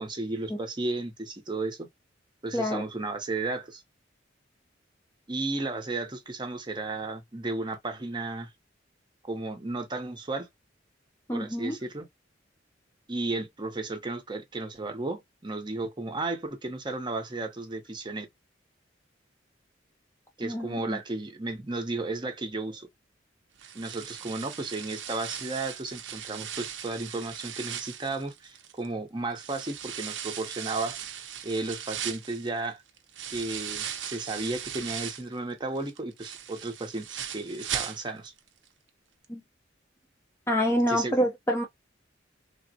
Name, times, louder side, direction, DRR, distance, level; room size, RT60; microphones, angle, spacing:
voice 1, 0.0-1.9 2.4-3.8 5.3-8.5 9.2-10.5 11.3-12.1 13.1-18.3 20.4-22.9 23.7-31.0 31.4-32.8 33.3-38.3 40.9-41.1, right 2 dB, 25° right, 0.6 m, -34 dB
voice 2, 11.3-11.8 20.4-21.0 39.3-39.4 40.5-41.6, equal, 15° left, 0.5 m, -27 dB
sound 1, 23.6-28.9 29.4-35.4 35.8-38.4 38.7-38.8 39.2-39.3, right 9 dB, 70° right, 0.6 m, -38 dB
3.3 x 2.1 x 2.6 m
head